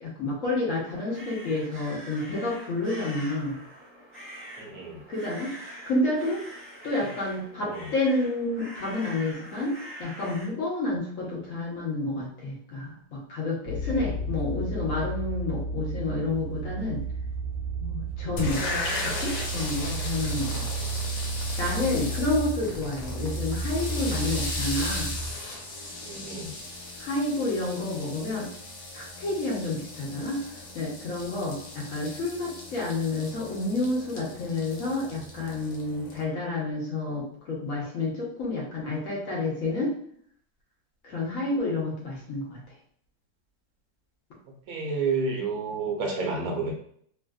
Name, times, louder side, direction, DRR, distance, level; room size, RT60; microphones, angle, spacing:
voice 1, 0.0-3.6 5.1-6.4 6.8-17.0 17.8-18.6 19.0-20.7 21.6-25.1 27.0-28.5 28.9-30.4 30.7-39.9 41.0-42.6, left 2 dB, 50° left, -4 dB, 1.2 m, -29 dB
sound 1, 0.7-10.5, right 1 dB, 10° right, 0.8 m, -44 dB
voice 2, 4.6-5.0 7.6-7.9 13.9-14.2 26.0-26.5 30.0-30.1 44.7-46.7, right 4 dB, 65° right, -1 dB, 1.1 m, -31 dB
sound 2, 13.7-25.3, right 2 dB, 35° right, 1.1 m, -32 dB
sound 3, 18.4-36.2, left 2 dB, 75° left, 1.4 m, -37 dB
3.3 x 2.5 x 2.3 m, 0.63 s
omnidirectional pair, 2.0 m